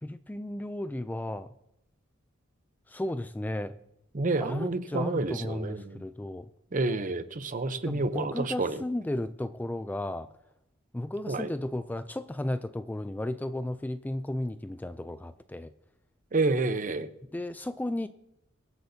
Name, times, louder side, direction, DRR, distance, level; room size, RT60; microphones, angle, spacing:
voice 1, 0.0-1.5 2.9-3.8 4.4-6.5 7.9-10.3 10.9-15.7 17.3-18.1, left 1 dB, 10° left, 12 dB, 0.3 m, -34 dB
voice 2, 4.1-6.0 6.7-8.8 11.3-11.5 16.3-17.1, right 3 dB, 40° right, 11 dB, 0.7 m, -29 dB
23.5 x 7.9 x 2.8 m, 0.83 s
head